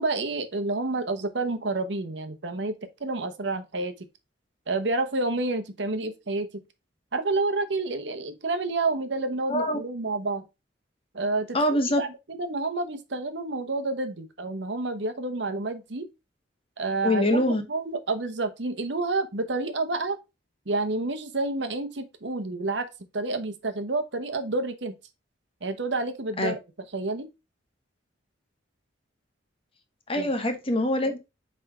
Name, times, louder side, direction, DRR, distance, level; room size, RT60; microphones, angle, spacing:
voice 1, 0.0-3.9 4.7-6.5 7.1-10.4 11.1-11.6 12.0-16.1 16.8-20.2 20.7-22.8 23.1-25.0 25.6-26.6 26.9-27.3 30.2-30.3, right 3 dB, 65° right, 1.0 m, -29 dB
voice 2, 9.5-9.8 11.5-12.0 17.0-17.6 26.4-26.5 30.1-31.2, left 1 dB, 30° left, 1.2 m, -24 dB
8.4 x 3.5 x 3.6 m
head